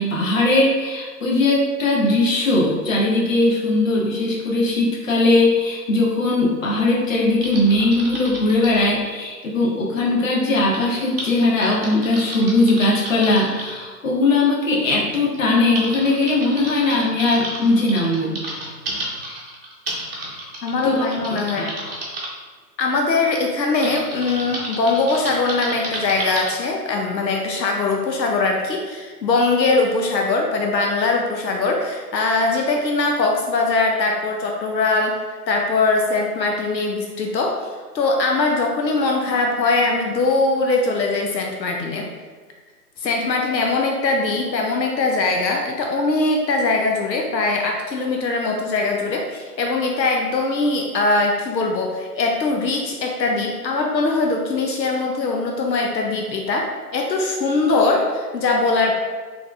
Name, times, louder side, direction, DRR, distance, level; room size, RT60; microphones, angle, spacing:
voice 1, 0.0-18.4 20.8-21.0 21.6-21.7, left 2 dB, 50° left, -4 dB, 1.1 m, -19 dB
Typing, 7.4-8.8 10.7-13.7 14.8-14.9 15.3-22.3 23.8-26.6, right 1 dB, 35° right, 0.7 m, -32 dB
voice 2, 20.6-21.7 22.8-35.2 35.5-37.7 37.9-42.1 43.0-56.7 56.9-58.9, left 3 dB, 90° left, 1 dB, 0.8 m, -21 dB
4.1 x 3.2 x 2.4 m, 1.4 s
hypercardioid pair, 165°, 49 cm